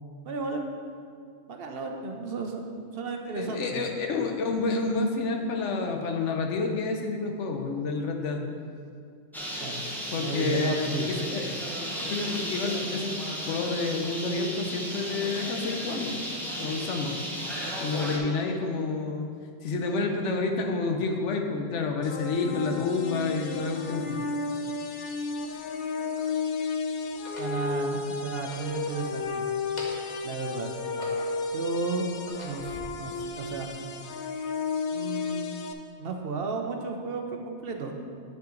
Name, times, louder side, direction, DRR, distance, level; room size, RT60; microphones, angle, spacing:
voice 1, 0.2-0.8 1.5-2.7 2.9-3.9 9.6-9.8 10.2-11.1 27.4-29.5 30.2-30.7 31.5-32.1 32.4-33.7 34.9-35.5 36.0-38.0, right 4 dB, 60° right, 3 dB, 0.8 m, -33 dB
voice 2, 3.4-8.4 10.1-11.5 12.1-13.1 13.4-16.3 16.6-17.1 17.8-19.3 19.6-24.2, left 3 dB, 80° left, 3 dB, 1.1 m, -29 dB
Bird, 9.3-18.2, equal, ahead, 0.9 m, -34 dB
sound 1, 22.0-35.7, left 4 dB, 60° left, 0.6 m, -33 dB
sound 2, 25.5-26.3 27.1-27.6 28.3-29.3 29.6-30.2 30.7-31.5 32.0-32.8, left 1 dB, 40° left, 1.1 m, -44 dB
8.9 x 5.7 x 3.8 m, 2.3 s
omnidirectional pair, 1.2 m